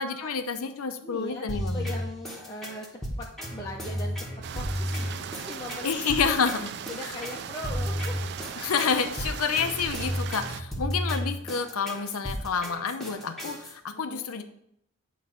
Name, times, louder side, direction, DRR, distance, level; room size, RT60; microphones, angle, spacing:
voice 1, 0.0-1.9 5.8-6.7 8.6-14.4, left 5 dB, 85° left, 8 dB, 0.6 m, -29 dB
voice 2, 1.0-1.4 1.7-4.3 4.5-5.9 6.4-6.6 6.9-8.5 13.9-14.3, left 1 dB, 20° left, -3 dB, 0.6 m, -40 dB
sound 1, 1.5-13.7, equal, ahead, 1.2 m, -33 dB
sound 2, 4.4-10.6, right 8 dB, 50° right, 0.3 m, -39 dB
9.1 x 3.1 x 5.6 m, 0.74 s
head